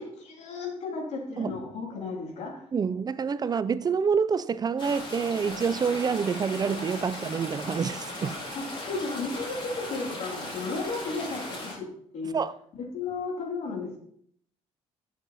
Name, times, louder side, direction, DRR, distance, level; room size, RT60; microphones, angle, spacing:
voice 1, 0.0-2.6 8.6-11.9 12.1-12.4 12.9-14.0, left 3 dB, 70° left, 3.0 m, -34 dB
voice 2, 2.7-8.4 12.3-12.6, right 6 dB, 35° right, 0.5 m, -27 dB
sound 1, 4.8-11.7, left 1 dB, 45° left, 4.8 m, -37 dB
11.5 x 7.4 x 4.1 m
cardioid pair, 100°, 12 cm